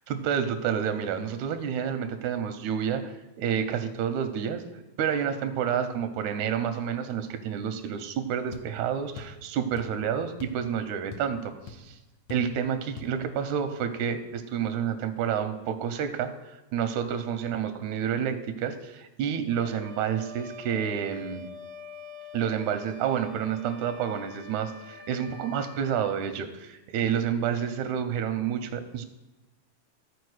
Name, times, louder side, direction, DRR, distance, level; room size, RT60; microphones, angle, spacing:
voice 1, 0.1-4.6 5.0-12.0 12.3-21.5 22.3-29.0, right 8 dB, 85° right, 9 dB, 2.0 m, -29 dB
sound 1, 8.5-8.7 9.2-9.4 9.8-10.0 10.4-10.6 10.9-11.4 11.7-11.8 12.3-12.5 13.0-13.1, left 5 dB, 70° left, 1.9 m, -42 dB
Wind instrument woodwind instrument, 19.5-26.0, left 2 dB, 60° right, 1.0 m, -45 dB
14.0 x 4.8 x 4.7 m, 1.0 s
omnidirectional pair, 3.4 m